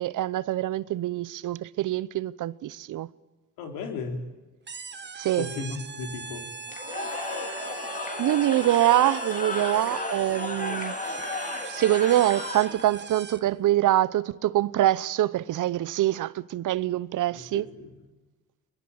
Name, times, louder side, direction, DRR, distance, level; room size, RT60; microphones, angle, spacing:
voice 1, 0.0-3.1 5.2-5.5 8.2-10.9 11.7-17.7, right 14 dB, 65° right, 0.9 m, -24 dB
voice 2, 3.6-4.2 5.4-6.5 17.3-17.9, left 4 dB, 85° left, 4.0 m, -35 dB
sound 1, 4.7-13.6, right 5 dB, 30° right, 1.7 m, -41 dB
Cheering / Crowd, 6.7-13.0, left 2 dB, 25° left, 4.2 m, -34 dB
22.5 x 22.0 x 8.7 m
supercardioid pair, 75°, 34 cm